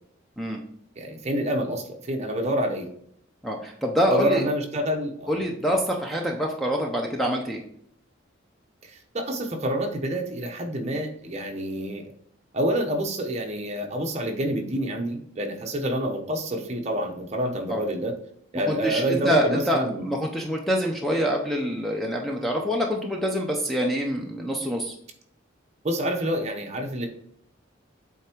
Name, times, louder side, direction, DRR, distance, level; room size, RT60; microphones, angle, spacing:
voice 1, 1.0-2.9 4.1-5.4 5.7-5.8 8.8-12.0 12.5-18.1 18.5-20.1 25.8-27.1, equal, 35° right, 3 dB, 1.0 m, -27 dB
voice 2, 3.4-4.4 5.3-7.6 17.7-17.8 18.7-24.9, equal, ahead, 1 dB, 0.6 m, -26 dB
8.1 x 3.5 x 4.5 m, 0.67 s
head